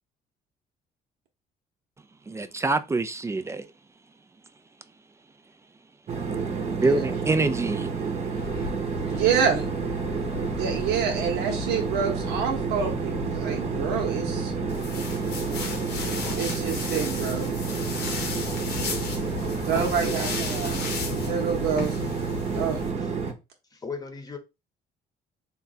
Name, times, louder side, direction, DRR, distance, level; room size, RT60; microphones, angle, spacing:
voice 1, 2.3-3.7 6.7-7.9, right 3 dB, 15° right, 0.4 m, -25 dB
sound 1, 6.1-23.3, right 5 dB, 40° right, 0.8 m, -30 dB
sound 2, 8.3-22.9, left 6 dB, 65° left, 0.5 m, -39 dB
voice 2, 9.0-9.7 10.6-14.5 16.4-17.6 19.6-20.9 21.2-22.0 22.5-22.8, right 7 dB, 80° right, 0.9 m, -27 dB
sound 3, 14.7-22.9, left 5 dB, 85° left, 1.0 m, -35 dB
voice 3, 20.0-20.3 23.0-23.1 23.7-24.4, left 5 dB, 20° left, 0.9 m, -36 dB
3.8 x 2.3 x 4.0 m
cardioid pair, 110°, 17 cm